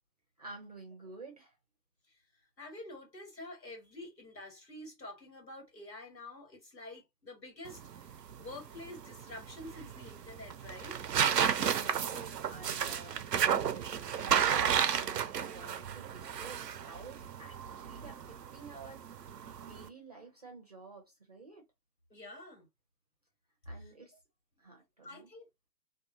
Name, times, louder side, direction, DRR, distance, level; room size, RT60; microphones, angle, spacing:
voice 1, 0.4-1.5 11.6-19.1 19.6-21.6 23.7-24.1 24.6-25.3, right 3 dB, 25° right, 0.5 m, -51 dB
voice 2, 2.6-7.8 8.4-11.0 22.1-22.7 23.8-23.9 25.0-25.5, left 2 dB, 90° left, 1.7 m, -48 dB
sound 1, 7.7-19.9, right 8 dB, 75° right, 0.6 m, -33 dB
2.7 x 2.3 x 2.5 m
figure-of-eight pair, 135°, 49 cm